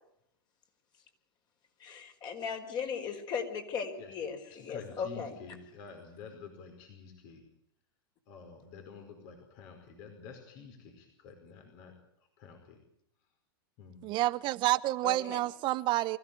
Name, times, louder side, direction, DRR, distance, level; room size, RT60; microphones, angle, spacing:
voice 1, 1.8-5.4 15.0-15.4, left 6 dB, 35° left, 4.9 m, -37 dB
voice 2, 4.5-7.4 8.3-12.0 12.4-12.8 13.8-14.1, left 5 dB, 50° left, 5.0 m, -49 dB
voice 3, 14.0-16.2, right 17 dB, 40° right, 0.8 m, -29 dB
24.5 x 16.0 x 8.6 m
hypercardioid pair, 125°, 13 cm